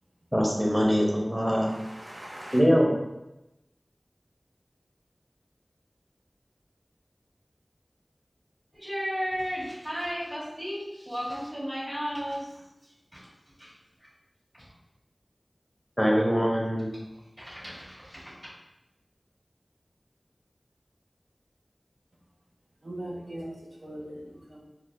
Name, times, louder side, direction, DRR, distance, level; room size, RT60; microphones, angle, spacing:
voice 1, 0.3-1.7 2.5-2.9 16.0-16.9, equal, 5° right, 0.7 m, -23 dB
voice 2, 1.4-2.6 22.8-24.6, right 1 dB, 70° right, 0.7 m, -41 dB
voice 3, 8.7-13.3 13.6-13.7 14.5-14.7 17.4-18.5, equal, 30° right, 1.4 m, -35 dB
4.0 x 2.2 x 2.5 m
wide cardioid pair, 50°, 0 cm